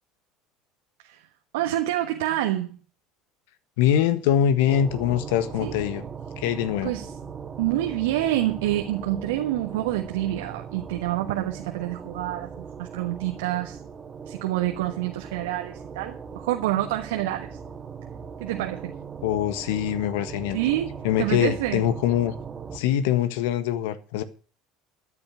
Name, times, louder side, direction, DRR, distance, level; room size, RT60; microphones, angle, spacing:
voice 1, 1.5-2.8 5.6-5.7 6.8-7.1 7.6-13.8 14.3-17.6 18.4-18.9 20.5-21.8, right 14 dB, 70° right, 4 dB, 1.3 m, -27 dB
voice 2, 3.8-6.0 6.4-6.9 19.2-20.6 21.0-22.3 22.7-24.2, left 10 dB, 65° left, 12 dB, 1.5 m, -23 dB
sound 1, 4.7-22.8, right 6 dB, 30° right, 2.1 m, -39 dB
13.5 x 9.9 x 6.3 m, 0.38 s
figure-of-eight pair, 70°, 0 cm